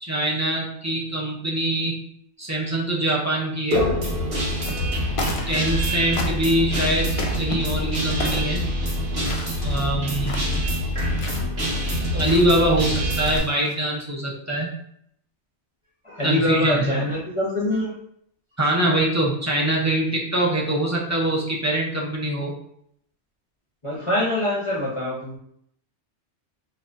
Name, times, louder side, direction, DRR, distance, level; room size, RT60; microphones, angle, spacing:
voice 1, 0.0-2.0 2.4-3.9 5.5-8.7 9.6-10.7 12.1-14.7 16.2-16.9 18.6-22.5, right 1 dB, 20° right, -4 dB, 0.6 m, -23 dB
Guitar, 3.7-13.4, equal, 60° right, 1.2 m, -25 dB
sound 1, 4.5-4.9 5.1-5.8 6.1-6.6 7.1-7.6 8.2-8.5 9.2-9.8 10.1-10.6 11.1-11.5 12.2-12.6 13.1-13.7, left 2 dB, 50° left, 0.4 m, -32 dB
voice 2, 5.4-6.1 12.1-12.2 16.0-18.0 23.8-25.4, left 1 dB, 30° left, -6 dB, 0.8 m, -25 dB
3.7 x 2.7 x 2.6 m, 0.70 s
omnidirectional pair, 1.2 m